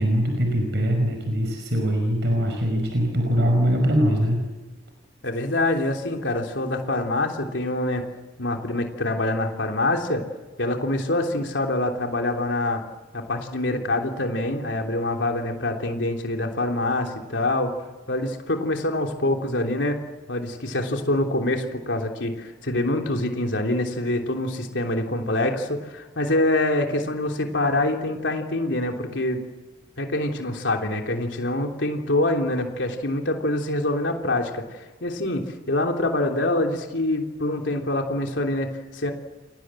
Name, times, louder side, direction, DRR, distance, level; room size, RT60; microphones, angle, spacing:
voice 1, 0.0-4.4, equal, 65° right, 3 dB, 5.5 m, -22 dB
voice 2, 5.2-8.1 8.4-10.2 10.6-12.8 13.1-17.7 18.1-20.0 20.3-29.4 30.0-39.1, left 2 dB, 85° left, 2 dB, 3.3 m, -25 dB
29.5 x 23.5 x 7.8 m, 1.2 s
head